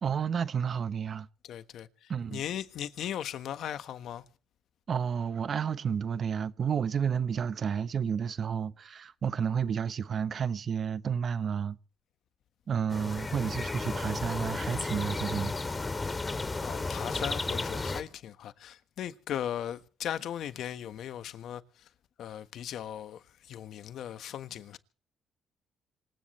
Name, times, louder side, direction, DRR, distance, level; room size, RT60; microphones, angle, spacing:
voice 1, 0.0-1.3 2.1-2.4 4.9-11.8 12.7-15.5, right 7 dB, 50° right, 1.1 m, -31 dB
voice 2, 1.4-4.2 16.5-21.9 22.2-24.8, left 10 dB, 75° left, 1.4 m, -38 dB
sound 1, 12.9-18.0, left 3 dB, 25° left, 2.7 m, -33 dB
26.5 x 16.0 x 3.2 m
cardioid pair, 90°, 0 cm